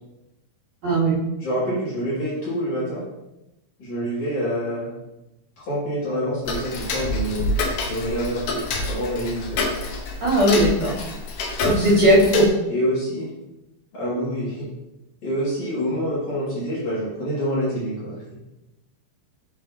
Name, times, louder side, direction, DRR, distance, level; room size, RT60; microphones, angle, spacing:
voice 1, 0.8-1.2 10.2-10.9 11.6-12.4, right 1 dB, 45° right, -8 dB, 3.3 m, -17 dB
voice 2, 1.4-3.0 3.8-4.9 5.6-7.6 7.9-9.6 12.1-12.3 12.7-13.3 13.9-14.7 15.2-18.2, equal, 45° left, -9 dB, 3.3 m, -26 dB
Tick-tock, 6.5-12.5, left 2 dB, 75° left, 1.9 m, -27 dB
8.8 x 7.1 x 2.9 m, 0.93 s
omnidirectional pair, 5.3 m